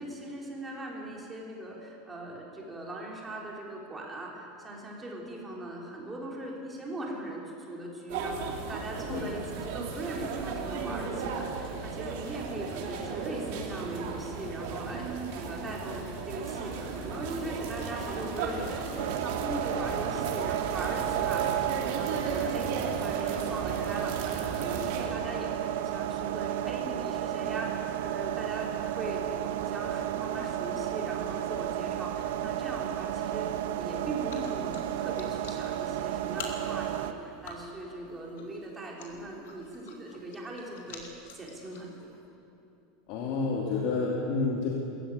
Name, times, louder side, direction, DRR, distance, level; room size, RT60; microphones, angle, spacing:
voice 1, 0.0-28.7 29.0-42.1, right 1 dB, 10° right, -3 dB, 3.8 m, -40 dB
sound 1, 8.1-25.1, right 5 dB, 60° right, 3.5 m, -35 dB
sound 2, 19.0-37.1, right 11 dB, 80° right, 1.0 m, -32 dB
sound 3, 34.3-42.3, left 4 dB, 85° left, 3.2 m, -48 dB
voice 2, 43.1-44.7, left 4 dB, 50° left, -2 dB, 2.7 m, -29 dB
20.5 x 15.0 x 9.2 m, 2.8 s
supercardioid pair, 155°, 0 cm